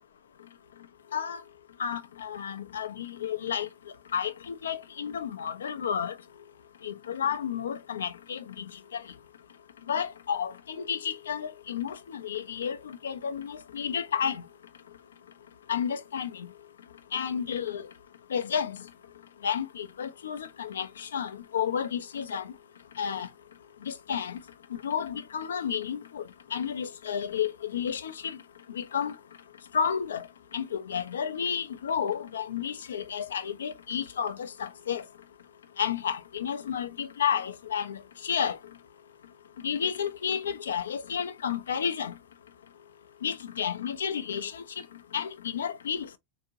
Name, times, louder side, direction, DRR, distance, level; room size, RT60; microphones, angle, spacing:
voice 1, 1.8-3.7 4.1-6.1 6.8-8.4 8.9-9.0 9.9-14.4 15.7-16.5 17.1-17.9 18.3-18.8 19.4-22.5 23.0-23.3 23.9-24.4 24.8-26.3 26.5-28.4 28.7-29.1 29.7-30.3 30.5-35.0 35.8-38.0 38.2-38.6 39.6-42.1 43.2-44.8 45.1-46.1, left 7 dB, 65° left, 0.5 m, -31 dB
4.3 x 2.6 x 2.5 m
figure-of-eight pair, 90°, 0 cm